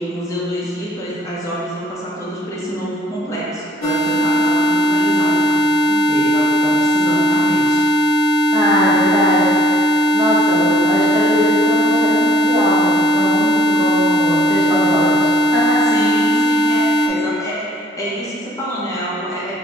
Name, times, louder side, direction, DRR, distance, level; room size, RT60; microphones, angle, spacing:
voice 1, 0.0-5.6 5.9-7.8 15.9-19.5, equal, 15° left, -8 dB, 0.8 m, -26 dB
sound 1, 3.8-17.1, equal, 90° left, 0.4 m, -17 dB
voice 2, 8.5-9.6 10.1-15.8, equal, 25° right, -8 dB, 0.8 m, -21 dB
4.2 x 2.2 x 3.8 m, 2.6 s
head